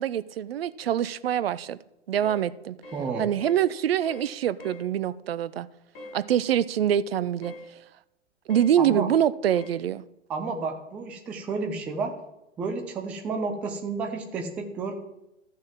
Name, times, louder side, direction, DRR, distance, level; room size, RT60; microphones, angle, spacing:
voice 1, 0.0-1.8 2.1-2.8 3.2-5.7 6.1-7.5 8.5-10.1, right 10 dB, 50° right, 0.7 m, -25 dB
sound 1, 2.2-2.5 2.8-3.1 3.4-3.6 4.0-4.3 4.6-4.8 5.9-6.2 7.4-7.7 8.5-8.7 9.5-9.8, left 1 dB, 40° left, 3.9 m, -42 dB
voice 2, 2.9-3.3 8.8-9.1 10.3-12.1 12.6-14.9, right 4 dB, 5° right, 0.3 m, -31 dB
13.0 x 6.4 x 7.3 m
figure-of-eight pair, 105°, 37 cm